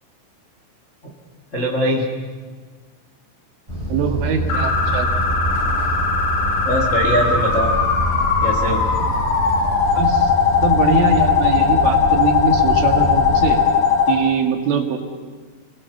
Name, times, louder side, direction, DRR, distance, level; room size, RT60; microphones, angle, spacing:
voice 1, 1.5-2.1 6.6-7.8 8.4-9.0, equal, 35° left, 0 dB, 1.2 m, -21 dB
sound 1, 3.7-13.6, equal, 5° right, 5.2 m, -26 dB
voice 2, 3.9-5.1 9.9-10.3 10.6-13.6 14.1-15.0, right 5 dB, 80° right, 3 dB, 4.7 m, -22 dB
sound 2, 4.5-14.1, left 6 dB, 70° left, 5.5 m, -19 dB
29.5 x 20.0 x 7.0 m, 1.4 s
omnidirectional pair, 5.7 m